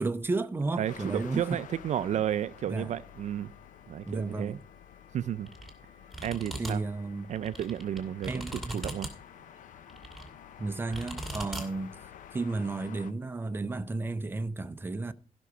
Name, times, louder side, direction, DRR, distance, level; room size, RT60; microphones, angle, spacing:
voice 1, 0.0-1.6 2.7-2.9 4.1-4.6 6.6-7.3 8.3-8.8 10.6-12.0 12.3-15.1, right 3 dB, 15° right, 0.6 m, -33 dB
sound 1, 0.8-13.1, left 10 dB, 85° left, 0.7 m, -51 dB
voice 2, 0.8-3.5 3.9-4.6 5.1-5.5 6.2-6.8 7.3-8.4 8.7-9.1, right 10 dB, 65° right, 0.4 m, -32 dB
Wind instrument woodwind instrument, 1.4-13.1, left 5 dB, 45° left, 3.6 m, -61 dB
sound 2, 5.5-5.7 6.1-6.7 7.3-9.1 9.9-10.3 10.9-11.6, right 1 dB, ahead, 2.4 m, -39 dB
15.0 x 6.1 x 4.9 m
wide cardioid pair, 140°, 13 cm